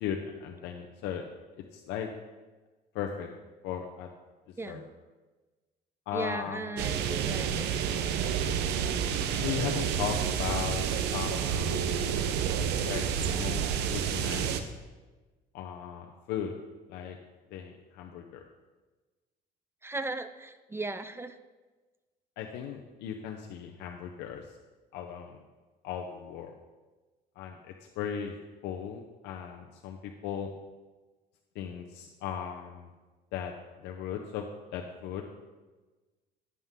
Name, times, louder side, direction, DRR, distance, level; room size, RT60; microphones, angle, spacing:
voice 1, 0.0-1.2 1.7-2.1 2.9-3.3 3.6-4.1 4.7-4.8 6.1-6.9 9.4-10.8 11.1-11.8 12.8-14.7 15.5-16.5 16.9-17.2 17.5-18.4 22.4-24.6 24.9-25.4 25.8-26.5 27.4-28.4 28.6-30.5 31.5-32.9 33.3-33.5 33.8-34.5 34.7-35.4, left 8 dB, 90° left, 2 dB, 0.8 m, -37 dB
voice 2, 6.1-8.3 19.8-21.3, right 2 dB, 15° right, 11 dB, 0.5 m, -37 dB
sound 1, 6.8-14.6, right 8 dB, 85° right, 0.7 m, -29 dB
11.0 x 7.7 x 3.7 m, 1.2 s
cardioid pair, 110°, 17 cm